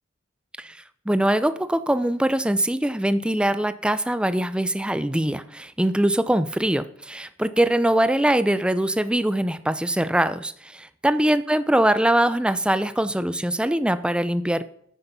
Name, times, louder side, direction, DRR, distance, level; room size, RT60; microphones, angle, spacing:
voice 1, 1.1-14.6, right 1 dB, 5° right, 13 dB, 0.5 m, -22 dB
9.9 x 9.7 x 5.6 m, 0.66 s
head